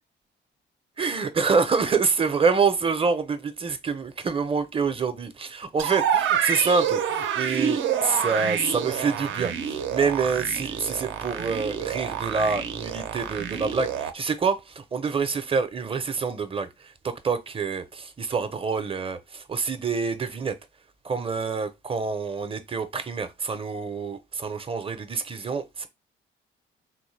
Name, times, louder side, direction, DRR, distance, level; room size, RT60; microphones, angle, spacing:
voice 1, 1.0-20.6 21.0-25.9, right 5 dB, 30° right, 0.6 m, -26 dB
sound 1, 5.8-14.1, right 8 dB, 75° right, 0.6 m, -28 dB
3.7 x 2.1 x 3.2 m
cardioid pair, 90°, 20 cm